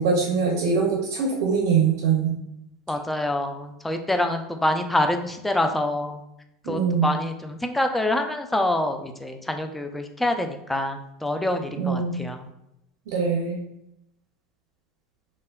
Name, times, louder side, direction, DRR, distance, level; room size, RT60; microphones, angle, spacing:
voice 1, 0.0-2.3 6.7-7.1 11.8-12.2 13.1-13.6, right 5 dB, 70° right, 0 dB, 0.5 m, -23 dB
voice 2, 2.9-6.2 6.7-12.5, left 1 dB, 5° left, 5 dB, 0.3 m, -26 dB
3.2 x 2.1 x 2.2 m, 0.83 s
hypercardioid pair, 90°, 2 cm